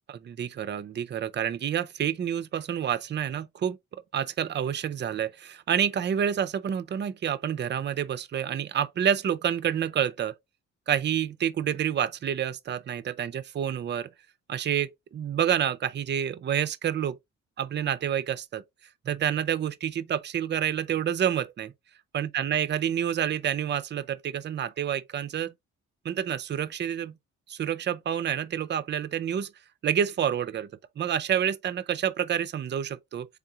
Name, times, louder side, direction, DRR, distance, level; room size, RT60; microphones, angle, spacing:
voice 1, 0.1-3.8 4.1-10.3 10.9-14.1 14.5-17.2 17.6-18.6 19.1-21.7 22.1-25.5 26.0-27.2 27.5-29.5 29.8-30.7 31.0-33.4, right 9 dB, 35° right, 0.5 m, -28 dB
3.6 x 3.6 x 2.7 m
cardioid pair, 90°, 30 cm